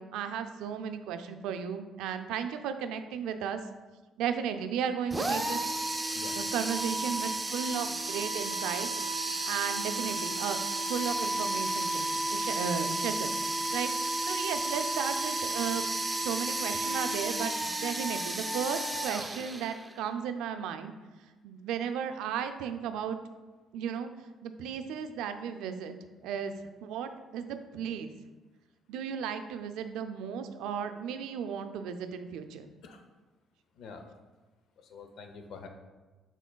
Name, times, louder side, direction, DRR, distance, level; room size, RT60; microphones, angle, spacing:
voice 1, 0.0-3.6 4.2-5.6 6.3-8.9 9.2-10.6 10.9-15.8 16.2-20.9 21.4-23.2 23.7-24.1 24.4-26.0 26.2-26.5 26.8-28.1 28.9-32.7, right 7 dB, 90° right, 8 dB, 0.3 m, -35 dB
sound 1, 5.1-20.0, right 2 dB, 15° right, 0.4 m, -32 dB
voice 2, 33.8-34.1 34.8-35.7, left 5 dB, 70° left, 6 dB, 0.5 m, -46 dB
6.0 x 3.7 x 2.2 m, 1.2 s
cardioid pair, 100°, 0 cm